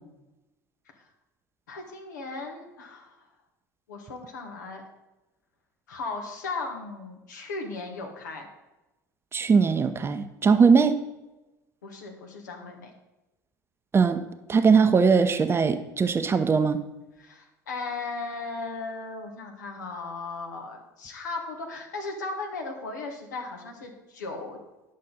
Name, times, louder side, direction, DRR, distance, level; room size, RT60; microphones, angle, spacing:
voice 1, 1.7-3.3 3.9-4.8 5.9-8.5 11.8-12.9 17.2-24.6, left 3 dB, 75° left, 2 dB, 1.5 m, -36 dB
voice 2, 9.3-11.0 13.9-14.2 14.5-16.8, right 5 dB, 25° right, 9 dB, 0.7 m, -20 dB
10.0 x 6.4 x 4.1 m, 1.0 s
figure-of-eight pair, 65°, 10 cm